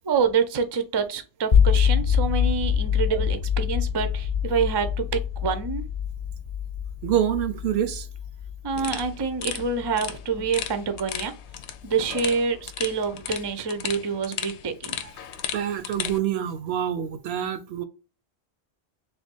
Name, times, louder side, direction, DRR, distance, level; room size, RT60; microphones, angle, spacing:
voice 1, 0.0-5.9 8.6-11.3 11.8-15.0, right 5 dB, 35° right, 0.4 m, -27 dB
sound 1, 1.5-11.5, left 8 dB, 45° left, 0.8 m, -25 dB
voice 2, 7.0-8.1 15.0-15.1 15.5-17.8, right 10 dB, 75° right, 0.8 m, -26 dB
sound 2, 8.8-16.2, left 9 dB, 85° left, 0.9 m, -36 dB
3.4 x 2.5 x 4.4 m
omnidirectional pair, 1.1 m